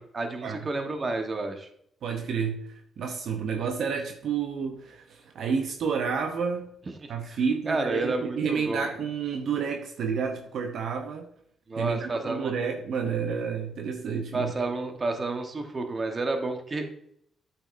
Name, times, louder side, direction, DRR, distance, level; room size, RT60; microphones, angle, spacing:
voice 1, 0.0-1.7 7.0-7.4 7.7-8.9 11.7-12.5 14.3-16.8, right 2 dB, 35° right, 5 dB, 1.2 m, -30 dB
voice 2, 2.0-6.7 7.1-11.3 11.8-14.5, right 6 dB, 70° right, 4 dB, 0.7 m, -30 dB
8.6 x 5.7 x 2.6 m, 0.69 s
supercardioid pair, 65°, 0 cm